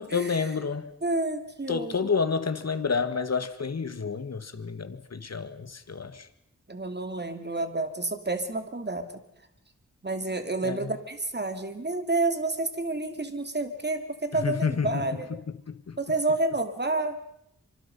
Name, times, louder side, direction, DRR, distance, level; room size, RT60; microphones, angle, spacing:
voice 1, 0.0-0.9 1.7-6.3 10.6-10.9 14.3-16.0, left 5 dB, 60° left, 10 dB, 1.9 m, -30 dB
voice 2, 1.0-2.0 6.7-9.2 10.0-15.3 16.0-17.1, right 2 dB, 35° right, 7 dB, 3.0 m, -29 dB
25.5 x 25.0 x 5.6 m, 0.76 s
wide cardioid pair, 80°, 30 cm